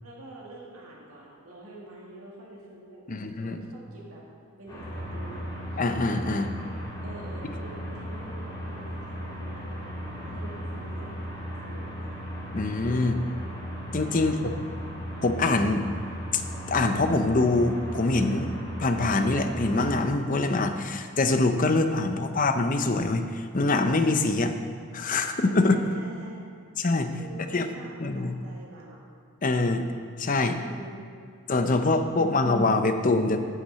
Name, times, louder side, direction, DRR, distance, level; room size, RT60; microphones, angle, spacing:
voice 1, 0.0-3.0 3.4-4.2 4.6-5.4 5.7-6.3 7.0-12.2 12.8-13.3 14.0-14.4 25.3-26.4 27.1-29.0 30.5-31.1 31.5-32.3, right 1 dB, 85° right, -4 dB, 2.2 m, -46 dB
voice 2, 3.1-3.6 5.8-6.5 12.5-13.1 13.9-14.4 15.2-15.9 16.3-16.4 16.7-24.5 24.9-25.8 26.8-27.1 27.5-27.6 28.0-28.3 29.4-29.9 30.2-30.6 31.5-33.4, left 2 dB, 40° left, 7 dB, 0.6 m, -24 dB
sound 1, 4.7-20.0, equal, 20° left, 2.2 m, -36 dB
9.7 x 5.9 x 7.5 m, 2.2 s
head